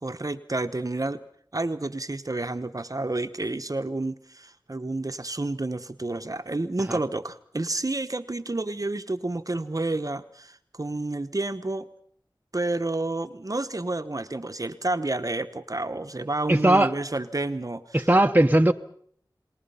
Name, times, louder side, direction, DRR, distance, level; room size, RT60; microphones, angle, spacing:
voice 1, 0.0-1.2 1.5-11.9 12.5-17.8, right 2 dB, 45° right, 9 dB, 1.0 m, -30 dB
voice 2, 16.5-16.9 17.9-18.7, right 1 dB, 20° right, 5 dB, 0.9 m, -18 dB
29.5 x 20.0 x 5.5 m, 0.62 s
wide cardioid pair, 55°, 8 cm